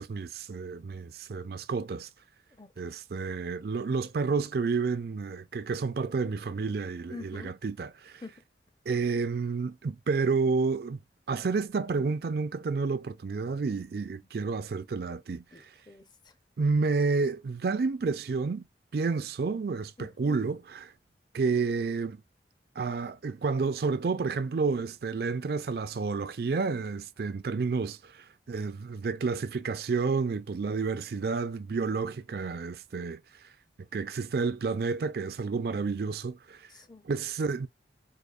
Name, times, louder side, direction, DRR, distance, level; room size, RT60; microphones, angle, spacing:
voice 1, 0.0-2.1 2.8-8.2 8.9-11.0 11.3-15.7 16.6-18.6 18.9-20.9 21.3-22.2 22.8-33.2 33.9-36.7 37.0-37.7, right 4 dB, 60° right, 0.4 m, -30 dB
voice 2, 2.5-2.9 7.1-7.5 8.2-8.4 15.5-16.3 20.0-20.4 36.7-37.1, left 3 dB, 25° left, 0.6 m, -46 dB
4.8 x 2.4 x 2.4 m
head